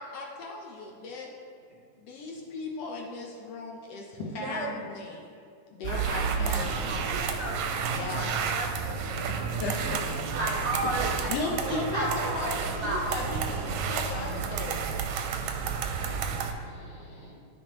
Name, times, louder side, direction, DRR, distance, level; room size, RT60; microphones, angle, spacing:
voice 1, 0.1-1.3 2.0-5.3 5.7-7.0 7.9-8.4 9.3-10.0 11.3-14.8, left 3 dB, 70° left, -1 dB, 1.6 m, -36 dB
voice 2, 4.2-4.9 5.8-13.2, right 1 dB, 65° right, -3 dB, 1.5 m, -35 dB
sound 1, 5.8-16.5, right 6 dB, 80° right, 1.8 m, -31 dB
sound 2, 10.7-11.4 13.1-13.2 15.0-15.2 16.0-16.1, right 2 dB, 90° left, 0.6 m, -37 dB
voice 3, 15.2-17.3, right 1 dB, 40° left, -7 dB, 2.5 m, -50 dB
13.0 x 4.9 x 3.0 m, 2.4 s
omnidirectional pair, 3.4 m